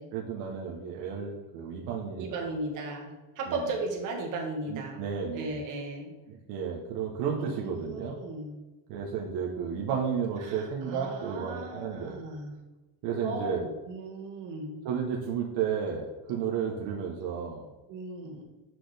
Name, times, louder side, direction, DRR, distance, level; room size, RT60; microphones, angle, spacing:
voice 1, 0.1-2.5 3.5-3.7 4.7-5.6 6.3-8.2 8.9-12.3 13.0-13.7 14.8-17.7, right 7 dB, 80° right, -1 dB, 1.1 m, -33 dB
voice 2, 2.2-5.0 5.3-6.1 7.4-8.6 10.4-12.5 13.2-14.8 17.9-18.4, right 2 dB, 50° right, 0 dB, 1.6 m, -36 dB
6.1 x 6.1 x 3.3 m, 1.1 s
cardioid pair, 150°, 39 cm